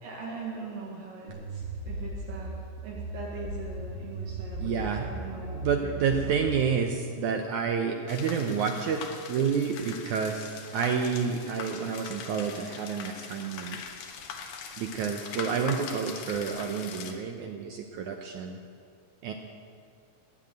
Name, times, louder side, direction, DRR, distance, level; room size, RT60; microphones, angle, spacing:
voice 1, 0.0-2.5 2.8-6.7 9.7-9.8, right 4 dB, 65° right, -3 dB, 3.4 m, -41 dB
sound 1, 1.3-6.6, right 1 dB, 30° right, 2.2 m, -37 dB
voice 2, 4.6-5.0 5.5-9.0 9.3-9.8 10.1-13.8 14.8-18.6 19.2-19.3, right 6 dB, 85° right, 4 dB, 1.7 m, -29 dB
sound 2, 8.1-17.1, left 6 dB, 70° left, 2.9 m, -42 dB
20.5 x 7.8 x 9.0 m, 2.3 s
omnidirectional pair, 4.5 m